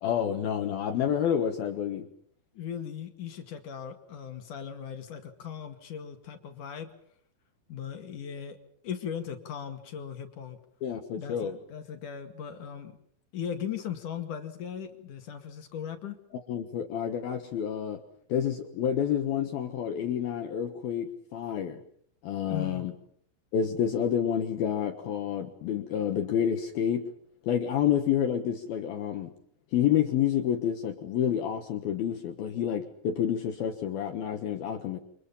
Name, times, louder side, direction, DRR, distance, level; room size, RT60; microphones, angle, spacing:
voice 1, 0.0-2.1 10.8-11.5 16.3-18.0 18.3-21.8 22.2-22.9 23.5-27.1 27.4-29.3 29.7-35.0, left 9 dB, 65° left, 6 dB, 2.5 m, -29 dB
voice 2, 2.5-6.9 7.7-8.6 8.8-10.6 11.1-13.0 13.3-16.2 22.5-22.8, left 8 dB, 50° left, 6 dB, 2.8 m, -38 dB
28.5 x 26.0 x 5.6 m, 0.64 s
omnidirectional pair, 5.9 m